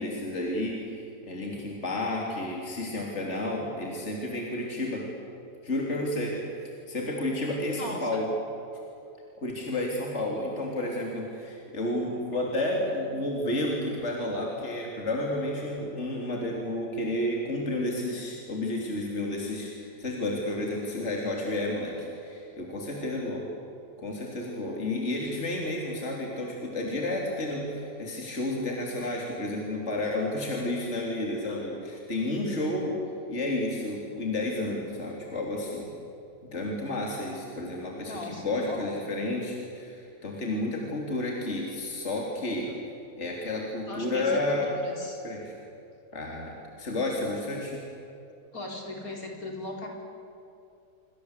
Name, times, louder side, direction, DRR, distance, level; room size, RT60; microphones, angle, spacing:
voice 1, 0.0-5.1 5.6-8.3 9.4-23.5 24.0-33.0 33.3-35.9 36.5-42.7 43.2-44.7 45.2-45.6 46.1-47.8, left 1 dB, 45° left, -1 dB, 3.7 m, -31 dB
voice 2, 7.8-8.2 38.0-39.0 43.8-45.2 48.5-49.9, left 2 dB, 60° left, 1 dB, 5.0 m, -38 dB
28.0 x 25.0 x 8.3 m, 2.8 s
omnidirectional pair, 1.7 m